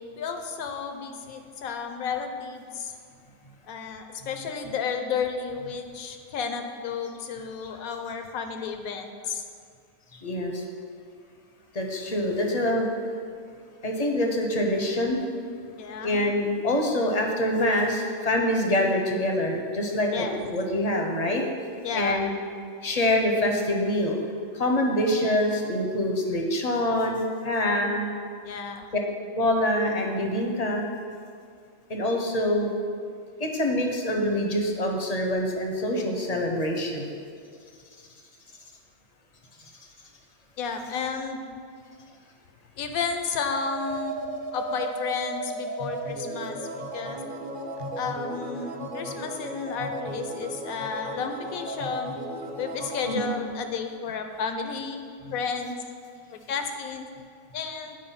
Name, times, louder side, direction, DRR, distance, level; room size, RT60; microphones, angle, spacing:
voice 1, 0.2-2.9 3.7-9.5 15.8-16.3 20.1-20.4 21.8-22.3 28.4-28.9 40.6-41.4 42.8-44.1 44.5-47.2 47.9-52.2 52.6-55.1 55.3-55.8 56.3-57.1 57.5-58.0, left 5 dB, 80° left, 6 dB, 1.2 m, -32 dB
voice 2, 10.2-10.6 11.7-12.9 13.8-15.2 16.0-21.4 21.9-22.3 22.8-24.2 24.5-28.1 29.4-30.8 31.9-32.7 33.4-37.1 53.1-53.3, left 1 dB, 35° left, 2 dB, 0.7 m, -25 dB
sound 1, 43.6-53.4, right 1 dB, 40° right, 1.1 m, -35 dB
8.7 x 4.8 x 5.7 m, 2.2 s
omnidirectional pair, 1.5 m